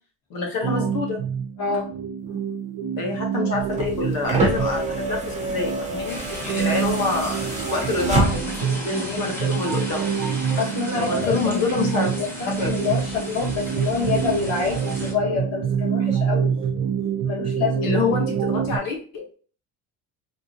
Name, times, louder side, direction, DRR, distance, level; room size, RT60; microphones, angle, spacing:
voice 1, 0.3-1.2 3.0-7.4 7.7-10.0 10.9-12.1 12.5-12.8 17.8-19.2, left 4 dB, 65° left, 0 dB, 1.2 m, -26 dB
sound 1, 0.6-18.8, right 8 dB, 60° right, 0.7 m, -27 dB
voice 2, 1.6-1.9 10.6-16.6 17.2-17.9, left 5 dB, 40° left, -4 dB, 1.8 m, -27 dB
sound 2, 3.6-8.7 9.9-10.0, right 2 dB, 20° right, 1.0 m, -27 dB
sound 3, 6.1-15.1, equal, 5° left, 1.0 m, -35 dB
3.6 x 2.6 x 2.8 m, 0.41 s
cardioid pair, 145°, 38 cm